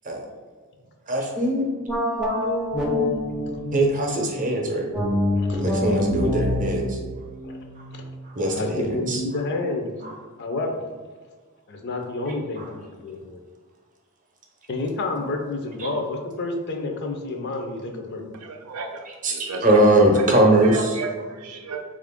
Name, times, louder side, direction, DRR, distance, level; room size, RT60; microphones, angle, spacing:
voice 1, 1.1-1.7 2.7-2.8 3.7-4.9 5.6-7.0 8.2-9.2 10.0-10.1 12.6-12.7 15.8-15.9 19.1-21.0, right 1 dB, 35° right, 0 dB, 0.7 m, -21 dB
sound 1, 1.9-4.2 4.9-8.3, left 1 dB, ahead, 0.5 m, -26 dB
voice 2, 5.4-6.0 7.4-7.6 7.9-8.1 8.5-9.9 10.4-10.9 11.7-13.4 14.7-18.2, left 2 dB, 50° left, 4 dB, 0.5 m, -30 dB
voice 3, 18.3-19.8 20.6-21.8, right 4 dB, 85° right, 4 dB, 0.5 m, -33 dB
3.8 x 2.5 x 3.5 m, 1.5 s
head